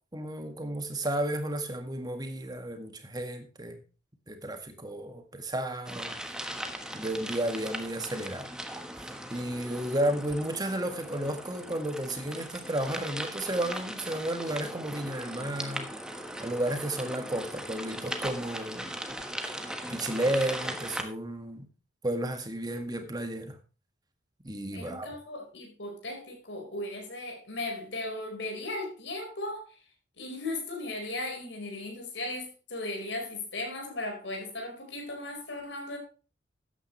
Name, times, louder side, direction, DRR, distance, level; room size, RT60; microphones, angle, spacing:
voice 1, 0.1-3.8 4.3-6.2 6.9-8.5 9.0-15.9 16.4-18.9 19.9-21.7 22.0-23.6 24.4-25.1, right 1 dB, 20° right, 1.8 m, -32 dB
sound 1, 5.8-21.0, right 1 dB, 5° right, 1.2 m, -39 dB
voice 2, 24.7-29.8 30.2-36.0, left 2 dB, 75° left, 4.7 m, -37 dB
13.0 x 9.4 x 3.3 m
head